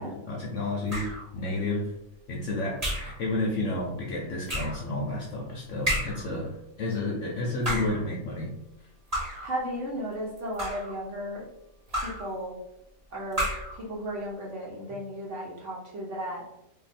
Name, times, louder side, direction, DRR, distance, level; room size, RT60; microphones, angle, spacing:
voice 1, 0.0-1.9 2.3-8.5, left 2 dB, 65° left, -2 dB, 0.8 m, -31 dB
sound 1, 0.9-1.3 2.8-3.2 4.5-4.8 5.8-6.3 7.5-8.0 9.1-9.5 10.4-11.0 11.9-12.3 13.3-13.8, equal, 25° right, 1.0 m, -31 dB
voice 2, 9.4-11.5 12.0-12.5 13.1-13.4 13.7-16.4, equal, 55° right, -4 dB, 0.9 m, -34 dB
2.7 x 2.6 x 4.1 m, 0.86 s
omnidirectional pair, 1.8 m